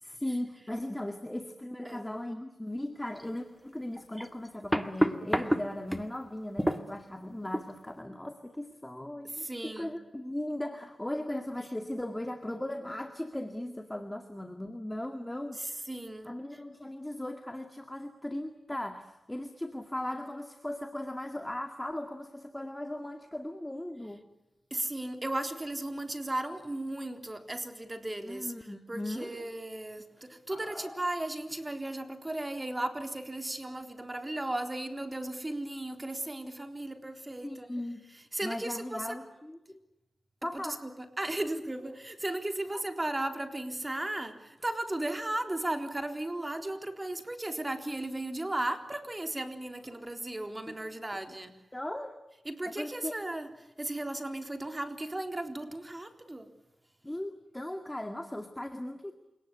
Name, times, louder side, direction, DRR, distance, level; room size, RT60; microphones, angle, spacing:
voice 1, 0.0-15.8 16.2-24.2 28.2-29.3 30.5-31.0 37.4-38.1 38.4-39.8 40.4-40.8 42.7-42.8 50.7-50.8 51.7-52.2 52.7-53.1 57.0-59.1, left 1 dB, 15° left, 7 dB, 2.1 m, -38 dB
sound 1, 3.2-3.3 4.0-6.1 6.6-7.0 7.5-7.7, equal, 5° right, 2.0 m, -29 dB
voice 2, 9.3-10.0 15.6-16.3 24.7-28.5 28.9-37.7 38.3-39.1 40.5-51.5 52.5-53.5 53.8-56.5, right 1 dB, 25° right, 6 dB, 3.8 m, -36 dB
29.0 x 18.5 x 9.9 m, 0.95 s
cardioid pair, 55°, 0 cm